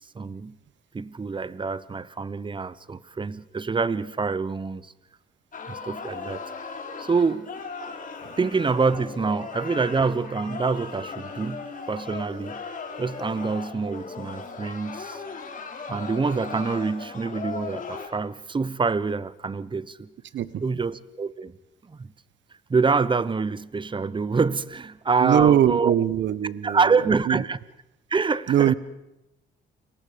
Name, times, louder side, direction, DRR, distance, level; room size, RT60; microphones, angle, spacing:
voice 1, 0.1-0.6 0.9-4.9 5.7-6.4 7.0-7.5 8.4-12.6 13.0-15.2 15.9-20.1 20.6-21.5 21.9-22.1 22.7-25.9 26.6-27.6 28.1-28.7, right 4 dB, 25° right, 0.9 m, -26 dB
sound 1, 5.5-18.1, left 5 dB, 40° left, 3.6 m, -37 dB
voice 2, 25.2-27.4 28.5-28.7, right 10 dB, 70° right, 1.0 m, -22 dB
30.0 x 22.5 x 5.1 m
cardioid pair, 90°, 20 cm